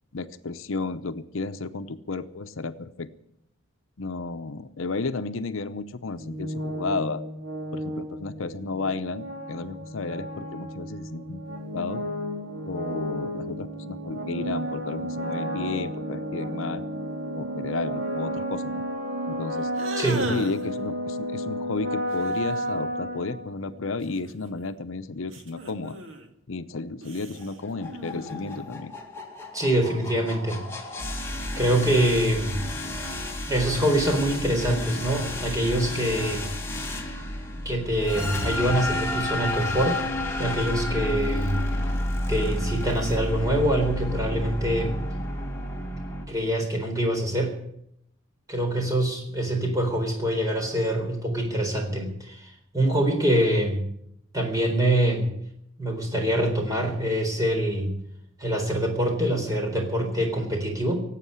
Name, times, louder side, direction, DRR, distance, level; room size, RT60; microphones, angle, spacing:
voice 1, 0.1-3.1 4.0-7.2 7.7-11.4 11.7-12.0 12.7-16.8 17.3-18.8 19.3-19.7 20.3-26.0 26.5-28.9, left 3 dB, 75° left, 10 dB, 0.7 m, -32 dB
sound 1, 6.2-23.8, equal, 45° right, 4.1 m, -32 dB
sound 2, 19.7-20.7 22.1-22.8 24.0-24.8 25.3-26.3 27.0-28.8, right 2 dB, 70° right, 2.0 m, -37 dB
voice 2, 20.0-20.3 29.5-30.7 31.6-32.6 33.5-36.5 37.6-40.0 40.4-41.6 42.3-44.9 46.3-47.5 48.5-53.8 54.3-55.3 55.8-58.0 58.4-61.0, right 1 dB, 15° right, 1 dB, 4.0 m, -25 dB
sound 3, 27.4-46.3, left 1 dB, 10° left, 2.0 m, -31 dB
17.5 x 8.4 x 9.8 m, 0.76 s
head